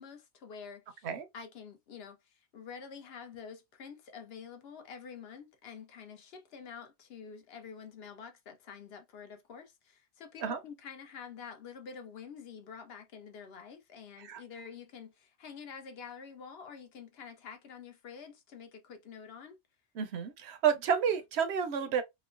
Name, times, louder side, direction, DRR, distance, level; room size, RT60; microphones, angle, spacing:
voice 1, 0.0-1.1 1.3-19.6, left 6 dB, 65° left, 0.8 m, -48 dB
voice 2, 20.0-22.0, right 7 dB, 75° right, 0.8 m, -30 dB
3.0 x 2.1 x 2.4 m
omnidirectional pair, 1.2 m